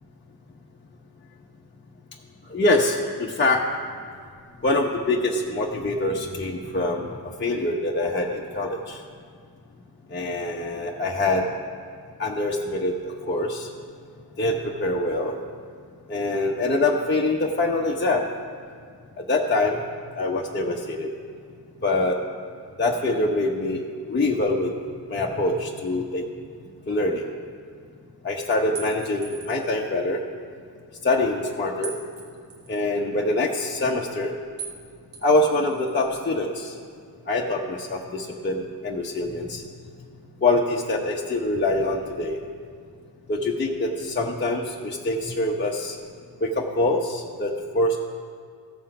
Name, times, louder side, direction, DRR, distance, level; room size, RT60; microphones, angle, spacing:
voice 1, 2.5-3.6 4.6-9.0 10.1-11.5 12.2-13.7 14.4-15.3 16.1-18.2 19.2-19.8 20.1-21.1 21.8-22.2 22.8-24.7 25.1-26.2 26.9-27.2 28.2-30.2 31.0-31.9 32.7-34.3 35.2-36.7 37.3-39.6 40.4-42.4 43.3-46.0 46.4-48.0, left 2 dB, 25° left, -2 dB, 0.9 m, -24 dB
sound 1, 28.8-29.7 31.8-32.8 34.6-34.8 35.1-36.1, right 6 dB, 75° right, 2.1 m, -40 dB
15.5 x 5.7 x 4.8 m, 2.1 s
cardioid pair, 65°, 42 cm